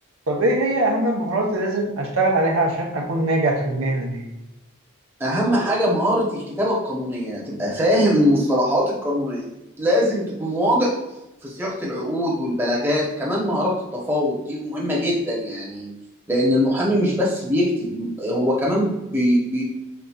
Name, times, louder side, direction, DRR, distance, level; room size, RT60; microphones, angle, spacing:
voice 1, 0.3-4.2, right 2 dB, 70° right, -1 dB, 0.9 m, -22 dB
voice 2, 5.2-9.4 9.8-10.9 11.4-15.9 16.3-19.6, equal, 10° right, -5 dB, 0.9 m, -22 dB
5.7 x 3.9 x 2.4 m, 0.95 s
head